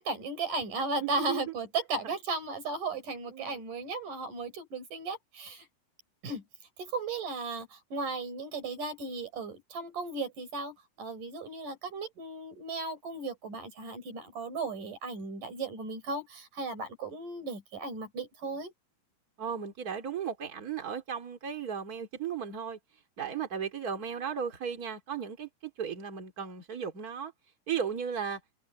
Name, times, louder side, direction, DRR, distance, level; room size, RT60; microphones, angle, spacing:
voice 1, 0.0-5.7 6.2-6.4 6.8-18.7, right 3 dB, 80° right, 6.1 m, -36 dB
voice 2, 1.0-1.4 3.3-3.6 19.4-22.8 23.2-27.3 27.7-28.4, right 7 dB, 30° right, 3.0 m, -35 dB
omnidirectional pair, 3.7 m